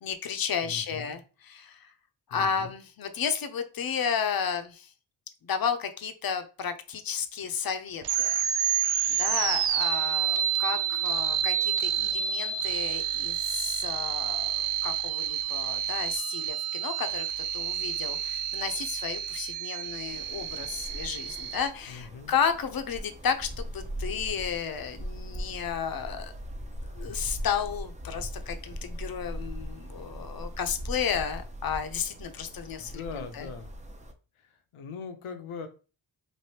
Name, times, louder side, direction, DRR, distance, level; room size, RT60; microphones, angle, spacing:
voice 1, 0.0-1.9 2.3-4.9 5.4-8.4 9.2-26.3 26.8-33.5, left 7 dB, 45° left, 9 dB, 0.6 m, -33 dB
voice 2, 0.6-1.2 2.3-2.7 21.9-22.3 32.8-33.7 34.7-35.7, left 5 dB, 80° left, 8 dB, 0.7 m, -40 dB
sound 1, 8.0-21.7, right 9 dB, 85° right, 0.6 m, -29 dB
sound 2, 20.1-34.1, equal, 15° right, 0.5 m, -40 dB
3.2 x 2.5 x 2.8 m, 0.34 s
cardioid pair, 65°, 49 cm